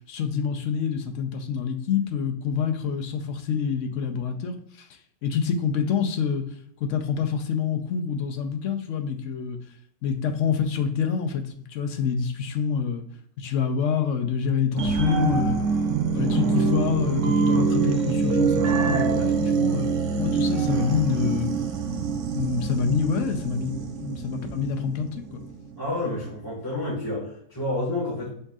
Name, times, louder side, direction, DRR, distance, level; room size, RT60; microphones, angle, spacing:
voice 1, 0.0-4.9 5.2-6.4 6.8-9.6 10.0-13.0 13.4-15.6 16.1-21.5 22.3-23.7 24.0-25.4, left 6 dB, 60° left, 5 dB, 0.8 m, -26 dB
sound 1, 14.8-25.8 26.2-26.3, right 5 dB, 65° right, 0.9 m, -25 dB
voice 2, 25.8-28.3, left 1 dB, 15° left, -7 dB, 1.8 m, -29 dB
5.4 x 3.7 x 2.3 m, 0.69 s
omnidirectional pair, 1.7 m